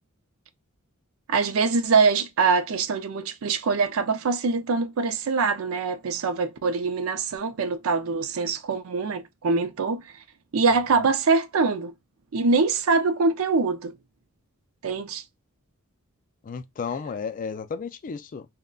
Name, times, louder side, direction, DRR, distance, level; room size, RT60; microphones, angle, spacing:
voice 1, 1.3-10.0 10.5-11.9 12.3-14.0 14.8-15.2, right 4 dB, 70° right, 0.5 m, -23 dB
voice 2, 16.4-18.5, left 5 dB, 40° left, 0.3 m, -33 dB
3.6 x 2.1 x 2.2 m
head